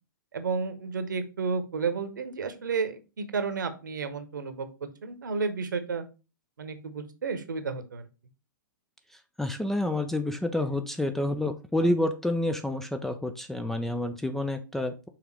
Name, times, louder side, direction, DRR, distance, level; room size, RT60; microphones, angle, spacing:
voice 1, 0.3-4.7 5.0-6.0 6.6-8.1, right 5 dB, 65° right, 10 dB, 1.0 m, -32 dB
voice 2, 9.1-15.1, left 1 dB, 5° left, 8 dB, 0.4 m, -29 dB
5.9 x 3.5 x 4.6 m, 0.30 s
figure-of-eight pair, 110°, 11 cm